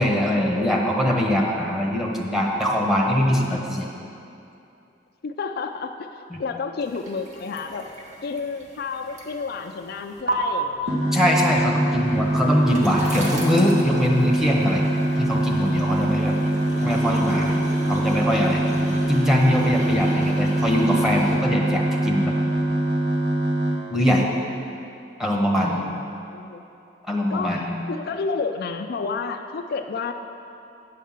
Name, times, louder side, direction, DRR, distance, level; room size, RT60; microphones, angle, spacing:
voice 1, 0.0-3.9 11.1-14.9 15.2-16.4 16.8-17.6 17.9-22.3 23.9-24.2 25.2-25.8 27.1-27.7, equal, ahead, -2 dB, 1.2 m, -22 dB
voice 2, 5.2-7.9 8.2-11.1 25.6-26.6 27.3-30.1, left 4 dB, 60° left, 6 dB, 0.4 m, -31 dB
sound 1, 6.8-10.3 11.8-21.4, right 1 dB, 45° right, 1.5 m, -37 dB
sound 2, 10.8-23.8, right 1 dB, 70° right, 1.4 m, -23 dB
9.3 x 5.6 x 7.3 m, 2.7 s
head